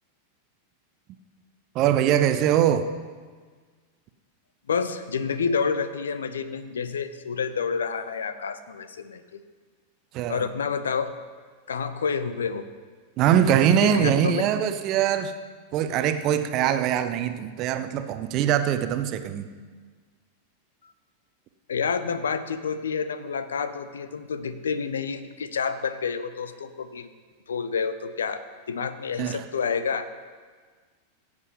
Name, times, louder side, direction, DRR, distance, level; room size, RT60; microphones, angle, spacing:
voice 1, 1.7-2.9 10.1-10.5 13.2-15.3 15.7-19.5 29.2-29.4, right 10 dB, 40° right, 9 dB, 0.8 m, -22 dB
voice 2, 4.7-9.4 10.3-11.1 11.7-12.7 13.7-14.4 21.7-27.1 27.5-28.4 28.7-30.1, left 6 dB, 65° left, 12 dB, 0.7 m, -29 dB
16.5 x 8.1 x 5.5 m, 1.6 s
figure-of-eight pair, 90°, 0 cm